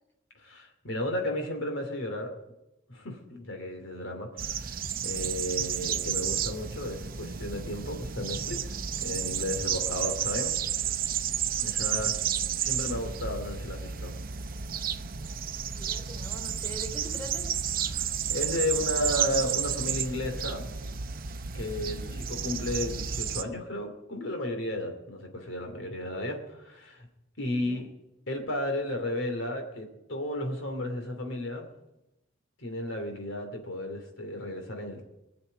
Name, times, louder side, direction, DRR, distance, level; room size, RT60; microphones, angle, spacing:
voice 1, 0.4-2.3 2.9-10.6 10.9-11.0 11.6-12.2 12.6-14.1 17.9-20.6 21.5-22.0 22.3-27.1 27.4-27.9 28.3-31.7 32.6-35.1, left 1 dB, 80° left, 4 dB, 2.8 m, -33 dB
sound 1, 4.4-23.4, right 8 dB, 50° right, 0.7 m, -32 dB
voice 2, 11.8-12.3 15.8-17.5 21.7-22.2 27.6-27.8, equal, 10° left, 2 dB, 3.2 m, -44 dB
20.0 x 7.0 x 9.9 m, 0.93 s
head